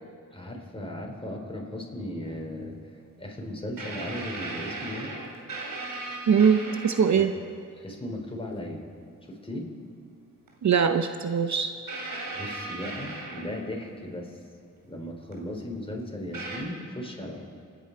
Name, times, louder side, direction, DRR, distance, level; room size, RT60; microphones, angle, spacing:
voice 1, 0.3-2.8 3.2-5.1 7.8-8.8 9.3-9.7 12.3-14.4 14.9-17.4, left 1 dB, 15° left, 0 dB, 4.1 m, -36 dB
sound 1, 2.2-2.4 3.8-7.3 8.5-8.6 10.5-10.6 11.9-13.9 15.3-15.4 16.3-16.6, right 2 dB, 80° right, 3.1 m, -37 dB
voice 2, 6.3-7.3 10.6-11.7, right 7 dB, 55° right, 8 dB, 0.8 m, -22 dB
27.5 x 10.0 x 4.7 m, 2.4 s
cardioid pair, 50°, 33 cm